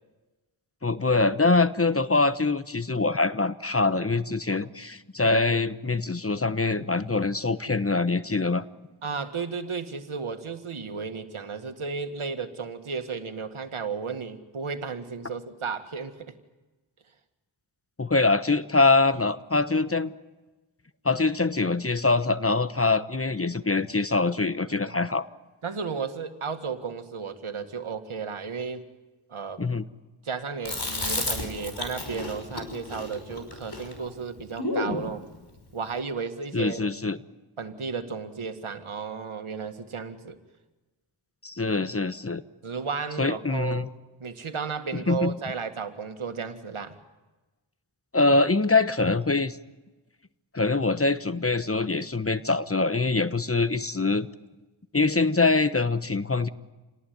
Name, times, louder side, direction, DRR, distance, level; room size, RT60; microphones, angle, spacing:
voice 1, 0.8-8.6 18.0-20.1 21.0-25.3 29.6-29.8 36.5-37.2 41.4-42.4 43.2-43.9 45.1-45.3 48.1-49.6 50.5-54.3 54.9-56.5, left 3 dB, 25° left, 12 dB, 1.2 m, -24 dB
voice 2, 9.0-16.3 24.7-24.9 25.6-28.9 29.3-29.6 30.2-35.2 35.7-36.9 37.6-40.4 42.6-43.9 44.2-47.0, right 5 dB, 75° right, 8 dB, 2.0 m, -34 dB
Chewing mastication, 30.6-35.0, left 2 dB, 50° left, 5.4 m, -32 dB
28.0 x 18.5 x 9.5 m, 1.1 s
cardioid pair, 45°, 50 cm